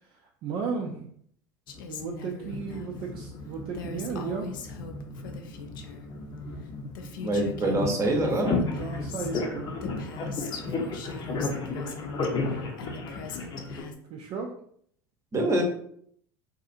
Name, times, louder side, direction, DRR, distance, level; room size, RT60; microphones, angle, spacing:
voice 1, 0.0-1.1 1.8-4.5 8.6-9.8 14.1-14.5, right 5 dB, 50° right, 1 dB, 0.4 m, -35 dB
Female speech woman speaking, 1.7-2.9 3.7-6.1 6.7-6.8 6.9-9.4 9.8-12.3 12.8-14.0, left 5 dB, 75° left, 0.4 m, -41 dB
sound 1, 1.7-13.8, left 3 dB, 40° left, 0.7 m, -34 dB
voice 2, 7.2-8.6 15.3-15.6, right 1 dB, 25° right, 2 dB, 0.7 m, -25 dB
2.7 x 2.4 x 2.5 m, 0.64 s
hypercardioid pair, 75°, 11 cm